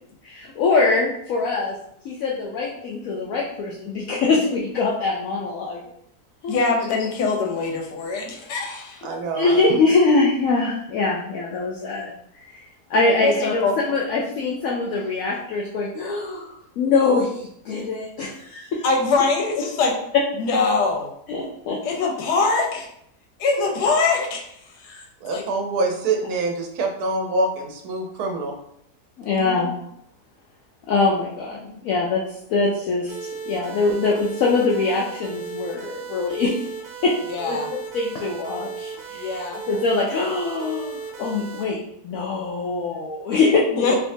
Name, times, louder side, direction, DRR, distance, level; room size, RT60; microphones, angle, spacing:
voice 1, 0.2-1.8 2.0-5.8 6.4-6.6 9.0-9.1 9.3-12.6 12.9-16.5 16.8-18.8 21.3-21.8 29.2-29.9 30.9-36.6 37.0-37.2 37.4-37.6 37.9-39.4 39.7-43.9, left 3 dB, 70° left, -3 dB, 0.9 m, -23 dB
voice 2, 6.5-9.0 13.2-13.7 18.8-19.9 20.4-21.1 21.8-22.9 23.4-24.5 24.8-25.0 25.3-25.4 29.3-29.6 37.3-37.7 39.1-39.6 43.7-43.9, left 4 dB, 90° left, 1 dB, 1.3 m, -23 dB
voice 3, 9.0-9.5 25.2-28.5, right 3 dB, 75° right, 2 dB, 1.2 m, -25 dB
sound 1, 33.1-41.6, right 5 dB, 60° right, 0.7 m, -36 dB
3.4 x 2.8 x 2.6 m, 0.72 s
omnidirectional pair, 1.7 m